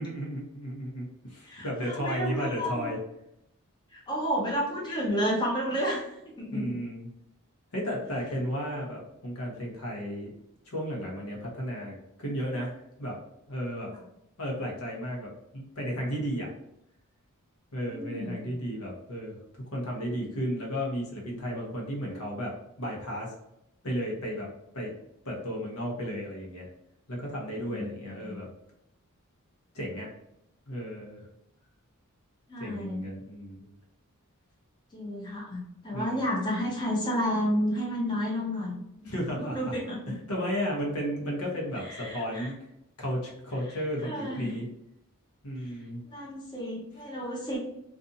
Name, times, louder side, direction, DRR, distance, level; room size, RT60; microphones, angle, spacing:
voice 1, 0.0-3.0 6.5-7.1 7.7-10.3 10.6-13.2 13.5-13.9 14.4-16.5 17.7-19.4 19.7-23.3 23.8-24.5 24.7-24.9 25.2-26.7 27.1-28.5 29.7-30.1 30.7-31.2 32.6-33.7 35.9-36.3 39.0-39.7 40.1-42.5 43.0-44.7 45.4-46.0, equal, 70° left, -2 dB, 0.9 m, -34 dB
voice 2, 1.4-2.9 3.9-6.7 17.9-18.4 27.7-28.4 32.5-33.1 34.9-38.8 39.4-40.0 41.8-42.5 44.0-44.6 46.0-47.6, equal, 20° left, -4 dB, 0.6 m, -31 dB
2.6 x 2.4 x 2.6 m, 0.81 s
head